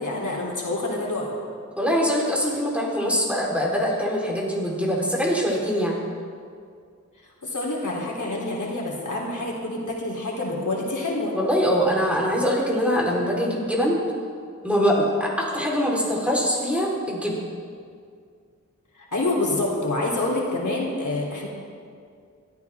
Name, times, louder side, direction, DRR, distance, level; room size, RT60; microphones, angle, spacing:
voice 1, 0.0-1.4 7.4-11.3 19.0-21.5, left 2 dB, 70° left, -4 dB, 3.4 m, -27 dB
voice 2, 1.8-5.9 11.3-14.0 14.6-17.3, equal, 5° right, -4 dB, 3.9 m, -23 dB
22.5 x 14.5 x 3.6 m, 2.2 s
wide cardioid pair, 75°, 31 cm